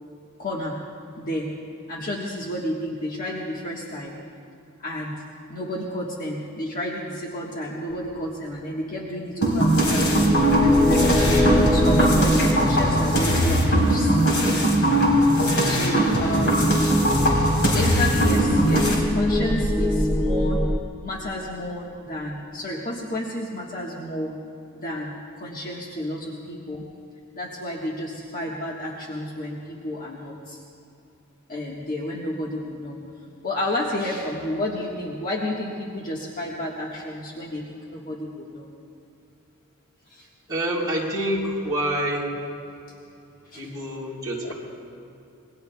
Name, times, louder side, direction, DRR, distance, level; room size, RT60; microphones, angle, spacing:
voice 1, 0.4-0.8 1.2-1.5 1.9-4.2 4.8-5.2 5.5-10.3 10.6-14.5 15.6-16.7 17.4-20.6 21.0-24.3 24.7-26.8 27.3-30.6 31.5-33.0 33.4-38.7 40.1-40.3 43.5-43.7 44.4-44.5, left 1 dB, 40° left, -3 dB, 1.4 m, -31 dB
sound 1, 9.4-19.0, equal, 60° left, 3.9 m, -20 dB
sound 2, 9.7-20.8, left 1 dB, 5° left, 0.6 m, -25 dB
voice 2, 40.5-42.3 43.5-44.5, right 1 dB, 20° right, -6 dB, 3.9 m, -27 dB
27.5 x 22.0 x 2.3 m, 2.7 s
head